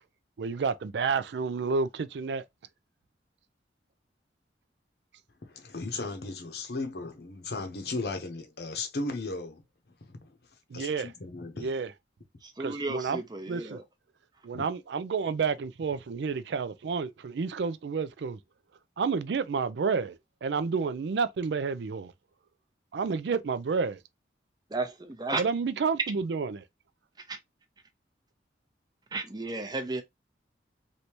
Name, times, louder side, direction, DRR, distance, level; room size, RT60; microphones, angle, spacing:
voice 1, 0.4-2.4 10.7-11.1 11.6-11.9 12.6-13.2 13.5-13.8 14.4-18.4 19.0-22.1 22.9-24.0 25.4-26.6, right 5 dB, 75° right, 0.4 m, -30 dB
voice 2, 5.4-9.6 10.0-10.3 10.7-11.8 14.5-14.6, left 3 dB, 60° left, 0.8 m, -36 dB
voice 3, 12.4-13.8 24.7-25.4 27.3-27.4 29.1-30.0, right 3 dB, 25° right, 0.5 m, -33 dB
3.3 x 2.7 x 2.9 m
head